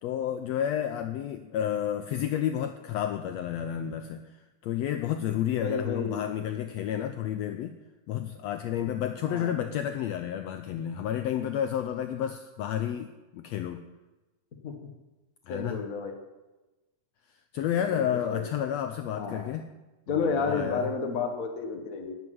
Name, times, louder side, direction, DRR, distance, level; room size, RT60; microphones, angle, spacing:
voice 1, 0.0-4.2 4.6-7.7 8.1-13.8 15.5-15.8 17.5-19.7 20.1-20.9, left 10 dB, 75° left, 7 dB, 1.6 m, -31 dB
voice 2, 5.5-6.2 9.2-9.5 14.6-14.9 15.5-16.1 17.8-18.5 19.1-19.5 20.1-22.1, left 4 dB, 40° left, 3 dB, 1.4 m, -31 dB
12.0 x 7.2 x 9.3 m, 1.1 s
omnidirectional pair, 3.5 m